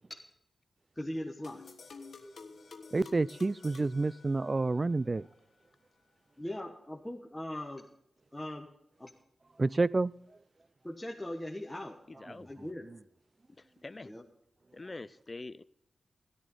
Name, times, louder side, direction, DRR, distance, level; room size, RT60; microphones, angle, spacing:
voice 1, 1.0-1.6 6.4-7.9 8.3-8.7 9.0-9.1 10.8-12.0 12.4-12.9 14.0-14.2, left 1 dB, 15° left, 1.4 m, -40 dB
sound 1, 1.4-4.9, left 4 dB, 65° left, 1.4 m, -50 dB
voice 2, 2.9-5.2 9.6-10.1, right 3 dB, 40° right, 0.4 m, -29 dB
voice 3, 12.1-12.5 13.8-14.1 14.7-15.6, left 3 dB, 40° left, 0.5 m, -44 dB
13.5 x 12.0 x 3.8 m
supercardioid pair, 40°, 0 cm